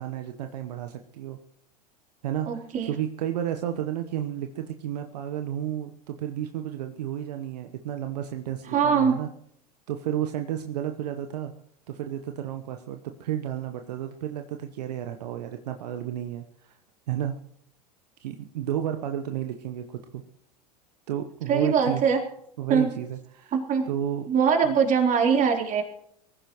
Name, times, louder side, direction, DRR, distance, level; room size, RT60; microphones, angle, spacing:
voice 1, 0.0-1.4 2.2-9.3 9.9-11.5 11.9-16.8 17.1-17.4 18.2-20.2 21.1-22.0 22.6-23.5 23.9-24.3 24.6-24.7, right 10 dB, 70° right, 6 dB, 1.1 m, -32 dB
voice 2, 2.5-2.9 8.7-9.2 21.5-22.2 22.7-22.9 23.5-23.9 24.3-25.8, right 6 dB, 40° right, 1 dB, 3.8 m, -22 dB
23.5 x 15.0 x 3.1 m, 0.69 s
hypercardioid pair, 90°, 21 cm